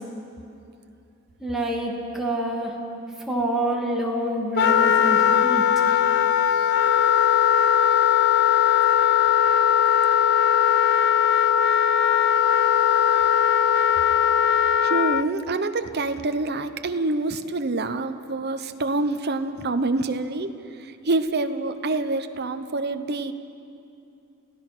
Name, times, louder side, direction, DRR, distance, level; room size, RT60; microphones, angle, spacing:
voice 1, 1.4-2.8 3.2-5.6, right 1 dB, ahead, -3 dB, 2.6 m, -27 dB
Wind instrument woodwind instrument, 4.6-15.2, left 9 dB, 50° left, 0.4 m, -19 dB
voice 2, 14.8-23.3, right 2 dB, 50° right, 9 dB, 0.9 m, -26 dB
30.0 x 16.0 x 6.2 m, 2.7 s
head